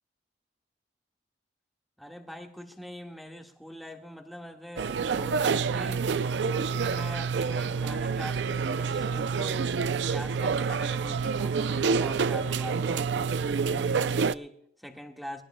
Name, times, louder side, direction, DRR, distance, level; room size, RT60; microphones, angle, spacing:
voice 1, 2.0-6.1 6.5-13.1 13.6-15.4, equal, ahead, 2 dB, 1.6 m, -43 dB
sound 1, 4.8-14.3, right 5 dB, 75° right, 0.4 m, -28 dB
22.5 x 16.5 x 2.2 m, 0.71 s
head